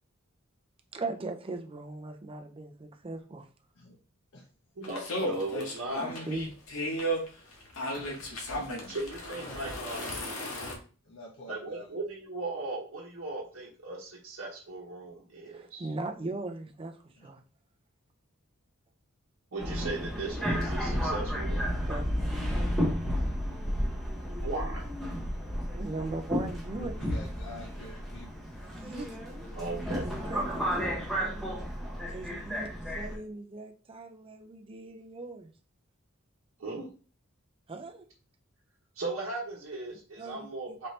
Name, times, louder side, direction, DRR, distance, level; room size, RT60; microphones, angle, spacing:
voice 1, 0.9-3.4 6.0-6.5 15.5-16.9 17.2-17.4 21.9-22.5 25.7-26.9 28.6-29.1 29.8-31.6 32.1-32.7 32.9-35.5 37.7-38.0 40.2-40.8, right 2 dB, 25° right, 4 dB, 0.5 m, -39 dB
sound 1, 4.8-10.8, equal, 90° left, 1.0 m, -34 dB
voice 2, 4.8-6.1 8.9-10.3 11.5-15.9 19.5-21.7 24.4-24.8 29.5-30.0 36.6-36.9 39.0-40.9, right 2 dB, 70° right, -5 dB, 0.9 m, -37 dB
voice 3, 7.9-8.9 9.3-9.6 11.0-11.9 17.2-17.3 26.8-28.4, left 1 dB, 60° left, -2 dB, 0.8 m, -48 dB
Subway metro underground, 19.6-33.2, equal, ahead, 0.9 m, -32 dB
4.2 x 2.7 x 3.2 m, 0.38 s
head